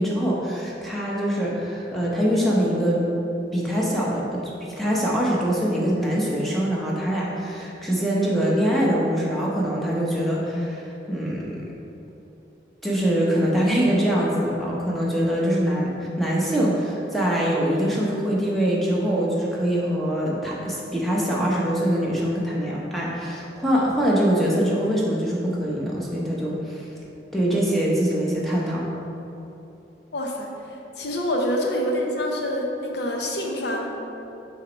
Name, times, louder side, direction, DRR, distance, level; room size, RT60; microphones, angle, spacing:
voice 1, 0.0-3.0 3.5-4.5 4.8-11.6 12.8-26.8 27.3-28.8, equal, ahead, -5 dB, 0.8 m, -23 dB
voice 2, 30.1-30.5 31.0-33.9, left 1 dB, 70° left, 0 dB, 0.7 m, -26 dB
6.4 x 2.9 x 5.1 m, 3.0 s
head